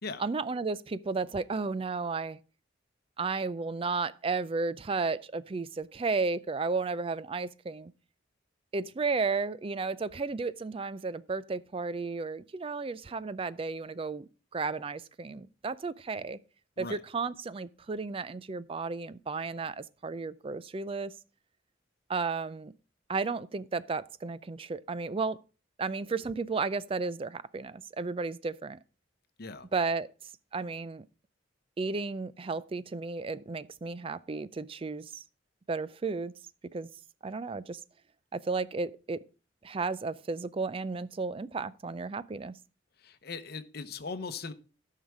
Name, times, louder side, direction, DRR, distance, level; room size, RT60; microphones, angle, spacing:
voice 1, 0.2-2.4 3.2-7.9 8.7-16.4 16.8-21.1 22.1-22.7 23.1-25.4 25.8-28.8 29.7-30.1 30.5-31.0 31.8-35.2 35.7-36.3 36.7-36.9 37.2-37.8 38.3-39.2 39.6-42.6, right 4 dB, 30° right, 0.4 m, -33 dB
voice 2, 43.0-44.5, left 4 dB, 55° left, 0.9 m, -39 dB
13.0 x 5.7 x 4.7 m
head